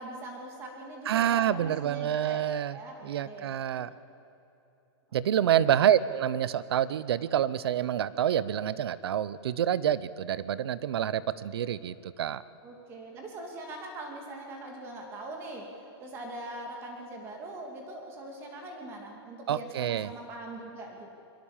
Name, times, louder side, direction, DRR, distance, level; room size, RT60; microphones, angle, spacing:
voice 1, 0.0-2.4 2.7-3.5 3.7-3.8 5.1-5.9 12.6-21.1, right 2 dB, 15° right, 2 dB, 2.6 m, -42 dB
voice 2, 1.1-2.8 3.0-3.9 5.1-12.4 19.5-20.1, right 10 dB, 60° right, 18 dB, 0.8 m, -27 dB
25.0 x 23.0 x 7.4 m, 2.9 s
supercardioid pair, 175°, 14 cm